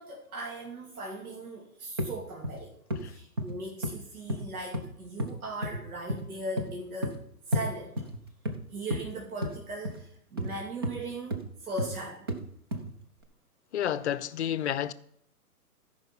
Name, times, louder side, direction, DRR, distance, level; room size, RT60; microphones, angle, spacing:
voice 1, 0.0-2.7 3.1-7.2 7.5-7.9 8.7-12.3, right 2 dB, 70° right, 2.4 m, -39 dB
sound 1, 2.0-2.1 2.4-2.6 2.9-3.1 3.4-3.6 3.8-4.0 4.3-4.9 5.2-5.4 5.6-5.8 6.1-6.3 6.6-6.7 7.0-7.2 7.5-7.7 8.0-8.6 8.9-9.0 9.4-9.6 9.8-10.0 10.4-10.5 10.8-11.0 11.3-11.4 11.8-11.9 12.3-12.4 12.7-12.9 13.2-13.3, equal, 20° right, 0.4 m, -32 dB
voice 2, 13.7-14.9, left 10 dB, 50° left, 0.6 m, -30 dB
13.0 x 5.3 x 5.8 m
figure-of-eight pair, 130°, 45 cm